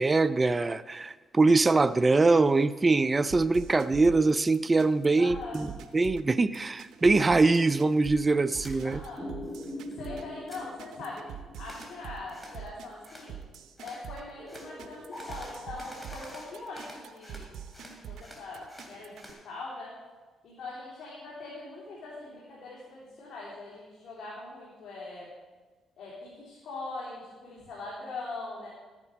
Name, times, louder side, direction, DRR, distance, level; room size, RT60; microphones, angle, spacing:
voice 1, 0.0-9.0, right 3 dB, 25° right, 13 dB, 0.4 m, -23 dB
sound 1, 3.3-19.3, right 8 dB, 75° right, 0.8 m, -45 dB
voice 2, 5.2-5.6 8.8-9.3 10.0-11.3 11.6-13.4 13.8-17.5 17.8-19.9 20.4-25.3 26.0-28.7, left 3 dB, 70° left, -6 dB, 3.4 m, -42 dB
sound 2, 8.6-8.8 9.2-9.9 10.2-10.6 11.6-11.9 12.3-12.6 13.0-13.3 13.8-14.0 14.5-14.7 15.1-17.5 17.7-19.4, equal, 5° left, 3.3 m, -49 dB
sound 3, 9.2-13.4 14.4-18.2, left 1 dB, 25° left, 4.1 m, -45 dB
13.5 x 9.7 x 5.1 m, 1.3 s
cardioid pair, 90°, 0 cm